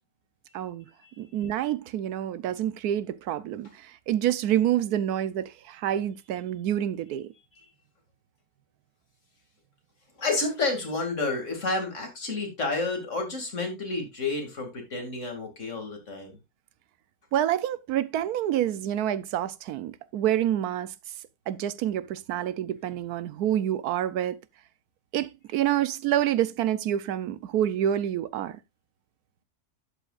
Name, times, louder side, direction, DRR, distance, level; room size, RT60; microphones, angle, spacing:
voice 1, 0.5-0.9 1.2-7.3 17.3-20.9 21.5-24.4 25.1-28.6, right 11 dB, 85° right, 1.2 m, -27 dB
voice 2, 10.2-16.4, left 3 dB, 50° left, 2.7 m, -30 dB
11.5 x 8.1 x 2.4 m
omnidirectional pair, 1.6 m